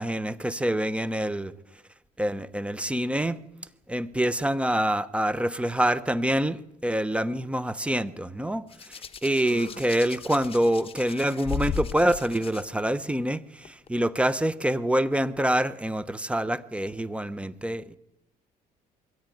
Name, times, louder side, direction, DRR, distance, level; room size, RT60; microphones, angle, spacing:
voice 1, 0.0-1.5 2.2-3.4 3.9-18.0, right 1 dB, 5° right, 0.9 m, -26 dB
Hands, 8.7-12.6 13.7-13.9, left 7 dB, 35° left, 1.3 m, -36 dB
22.0 x 14.0 x 9.3 m
cardioid pair, 110°, 17 cm